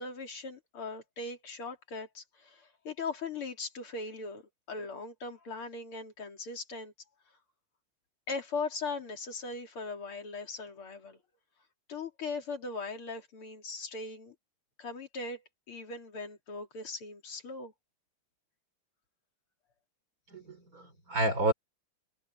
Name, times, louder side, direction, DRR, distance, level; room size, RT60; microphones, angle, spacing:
voice 1, 0.0-4.4 4.7-6.9 8.3-11.2 11.9-14.4 14.8-17.7, left 3 dB, 85° left, 3.9 m, -39 dB
voice 2, 20.3-21.5, right 1 dB, 40° right, 3.9 m, -30 dB
omnidirectional pair, 2.3 m